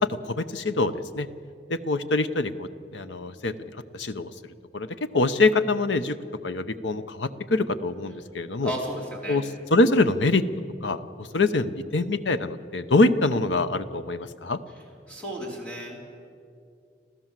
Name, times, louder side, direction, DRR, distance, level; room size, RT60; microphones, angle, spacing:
voice 1, 0.0-1.3 1.7-3.5 3.9-4.3 4.7-6.2 6.4-8.7 9.3-10.5 10.8-14.6, left 2 dB, 85° left, 11 dB, 0.9 m, -24 dB
voice 2, 8.6-9.4 15.1-16.0, equal, 5° left, -2 dB, 3.9 m, -33 dB
26.5 x 15.0 x 7.6 m, 2.4 s
head